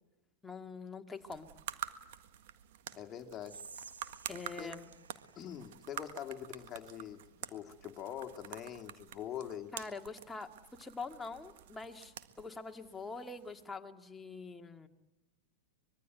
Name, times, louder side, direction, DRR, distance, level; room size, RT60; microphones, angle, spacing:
voice 1, 0.4-1.5 4.3-4.9 9.7-10.5 10.8-14.9, left 4 dB, 10° left, 4 dB, 2.0 m, -44 dB
sound 1, 1.2-13.7, right 12 dB, 60° right, 1.7 m, -48 dB
voice 2, 2.9-3.6 4.6-4.8 5.4-9.7, left 10 dB, 30° left, 6 dB, 2.2 m, -44 dB
Whispering, 3.4-6.6, right 5 dB, 85° right, 1.5 m, -55 dB
25.0 x 22.5 x 9.3 m, 1.0 s
hypercardioid pair, 100°, 0 cm